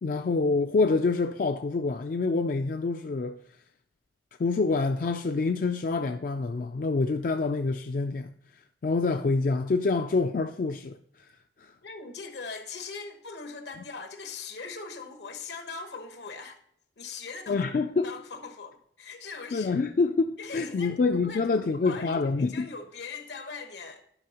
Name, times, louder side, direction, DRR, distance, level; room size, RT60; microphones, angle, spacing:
voice 1, 0.0-3.4 4.4-8.3 8.8-11.0 11.6-11.7 17.5-18.1 19.5-22.7, left 3 dB, 50° left, 0.3 m, -26 dB
voice 2, 11.8-16.6 17.0-17.6 17.9-19.8 20.4-24.0, left 4 dB, 80° left, 1.1 m, -41 dB
11.0 x 5.6 x 2.9 m
head